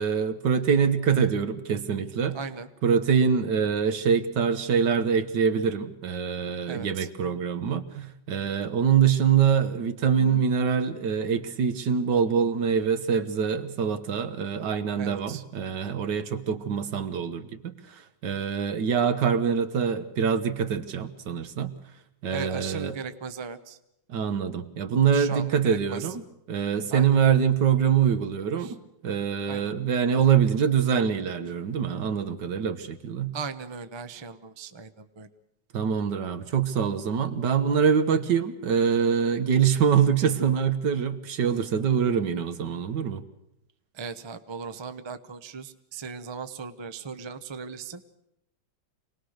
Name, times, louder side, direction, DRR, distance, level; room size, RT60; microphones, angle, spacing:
voice 1, 0.0-2.4 2.8-21.7 22.2-23.0 24.1-26.2 26.5-33.3 35.7-43.2, right 7 dB, 75° right, 10 dB, 1.8 m, -24 dB
voice 2, 2.3-2.7 6.7-7.1 15.0-15.4 22.3-23.8 25.1-26.1 26.9-27.2 28.6-28.7 29.5-29.7 33.3-35.3 43.9-48.0, right 5 dB, 25° right, 10 dB, 0.5 m, -38 dB
26.5 x 19.0 x 6.5 m, 0.83 s
omnidirectional pair, 1.9 m